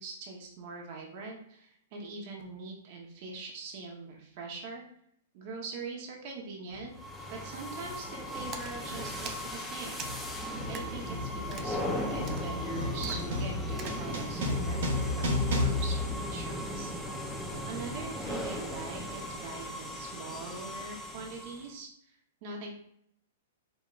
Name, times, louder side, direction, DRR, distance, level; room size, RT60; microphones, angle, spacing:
voice 1, 0.0-4.8 5.3-6.9 7.3-10.1 10.7-17.4 17.6-22.7, right 4 dB, 50° right, 0 dB, 1.1 m, -43 dB
sound 1, 6.7-6.9 7.8-8.1 8.4-16.9, left 2 dB, 70° right, 1.6 m, -34 dB
sound 2, 6.9-21.7, equal, ahead, 0.8 m, -37 dB
Splash splatter, 8.5-14.1, right 6 dB, 30° right, 0.5 m, -47 dB
5.1 x 3.5 x 2.5 m, 0.72 s
hypercardioid pair, 115°, 0 cm